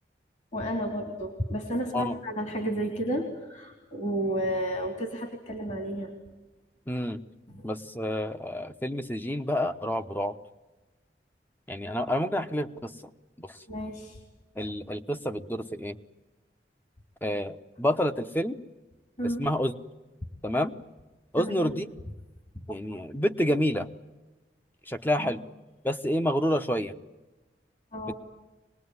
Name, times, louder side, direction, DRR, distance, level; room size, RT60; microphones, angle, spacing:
voice 1, 0.5-6.1 7.5-7.7 13.7-14.2 19.2-19.4 21.3-21.7 25.2-25.3 27.9-28.1, right 1 dB, 45° left, 4 dB, 3.4 m, -32 dB
voice 2, 6.9-7.2 7.6-10.4 11.7-12.9 13.4-13.5 14.6-16.0 17.2-18.6 19.4-19.7 20.4-20.7 21.3-21.9 22.7-23.9 24.9-25.4 25.8-26.9, equal, 10° left, 8 dB, 1.0 m, -28 dB
25.0 x 20.5 x 9.7 m, 1.1 s
head